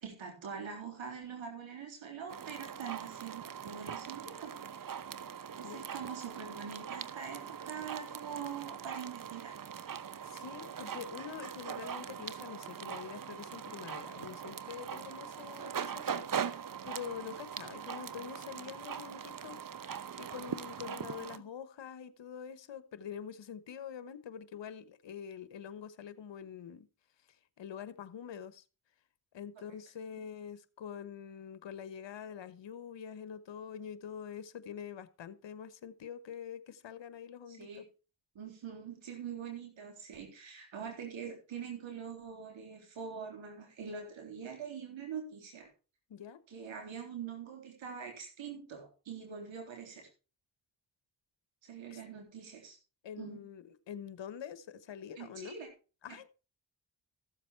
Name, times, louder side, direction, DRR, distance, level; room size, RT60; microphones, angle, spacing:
voice 1, 0.0-4.5 5.6-9.5 12.0-12.2 20.8-21.0 29.6-29.7 37.5-37.8 38.4-45.7 46.5-50.1 51.6-52.8 53.2-53.4 55.2-55.7, right 7 dB, 90° right, 3.7 m, -44 dB
sound 1, 2.3-21.4, right 8 dB, 45° right, 0.9 m, -41 dB
voice 2, 10.2-19.6 20.2-26.9 27.6-28.6 29.3-37.7 46.1-46.4 51.9-52.0 53.0-55.5 56.0-56.3, left 8 dB, 70° left, 1.2 m, -45 dB
14.5 x 7.6 x 4.6 m
cardioid pair, 45°, 45 cm